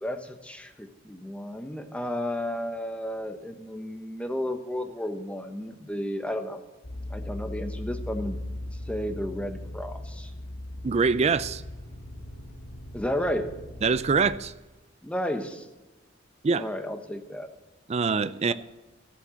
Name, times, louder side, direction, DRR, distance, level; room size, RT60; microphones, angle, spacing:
voice 1, 0.0-6.6 7.1-8.4 8.9-10.3 12.9-13.5 15.0-15.7 16.6-17.5, left 1 dB, 5° left, 1.1 m, -32 dB
sound 1, 6.8-14.4, left 1 dB, 60° left, 1.4 m, -38 dB
voice 2, 10.8-11.6 13.8-14.5 16.4-16.7 17.9-18.5, right 5 dB, 35° right, 0.4 m, -24 dB
12.5 x 7.6 x 7.8 m
head